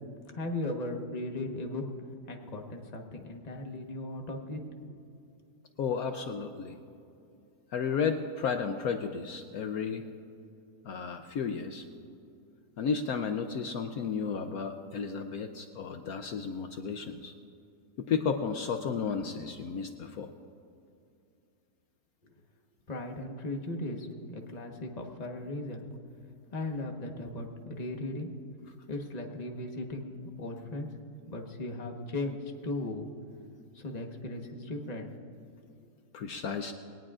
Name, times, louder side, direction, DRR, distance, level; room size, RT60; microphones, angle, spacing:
voice 1, 0.3-1.8 2.3-4.6 22.2-22.3 22.9-25.9 26.5-28.3 28.9-30.9 31.3-33.1 33.7-35.1, left 2 dB, 25° left, 2 dB, 1.2 m, -37 dB
voice 2, 5.8-6.7 7.7-10.1 10.8-11.9 12.8-17.3 18.0-20.3 36.1-36.7, left 6 dB, 70° left, 6 dB, 1.1 m, -33 dB
21.0 x 18.5 x 2.5 m, 2.6 s
omnidirectional pair, 1.7 m